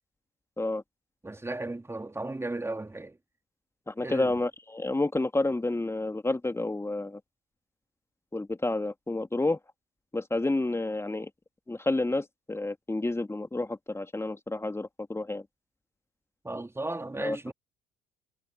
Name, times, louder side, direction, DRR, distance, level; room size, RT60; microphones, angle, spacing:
voice 1, 1.2-3.2 4.0-4.3 16.4-17.5, right 2 dB, 15° right, 2.7 m, -35 dB
voice 2, 3.9-7.2 8.3-9.6 10.1-11.3 11.7-15.5 17.2-17.4, left 2 dB, 15° left, 2.5 m, -30 dB
figure-of-eight pair, 55°, 20 cm